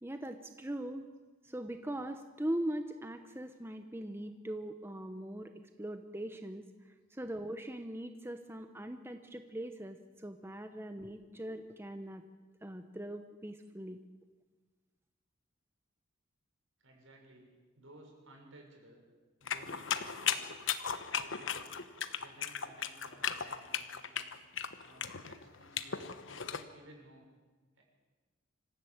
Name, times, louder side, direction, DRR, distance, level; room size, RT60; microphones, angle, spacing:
voice 1, 0.0-1.0 1.4-5.5 5.8-12.2 12.6-14.0, right 1 dB, 10° right, 7 dB, 0.9 m, -41 dB
voice 2, 16.8-19.0 19.4-20.6 21.0-21.8 22.2-24.3 24.8-27.3 27.7-27.8, right 1 dB, 75° right, 1 dB, 6.6 m, -58 dB
sound 1, 19.5-26.6, left 7 dB, 65° left, 1.2 m, -36 dB
25.5 x 15.0 x 8.8 m, 1.3 s
head